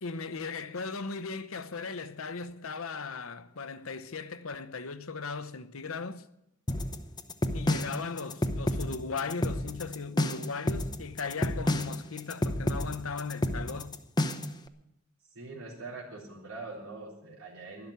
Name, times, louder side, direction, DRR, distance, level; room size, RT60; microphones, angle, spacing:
voice 1, 0.0-6.2 7.5-14.0, left 4 dB, 75° left, 0.9 m, -37 dB
sound 1, 6.7-14.6, left 1 dB, 20° left, 0.8 m, -30 dB
voice 2, 15.3-17.9, right 3 dB, 90° right, 3.9 m, -43 dB
12.0 x 11.5 x 8.1 m
head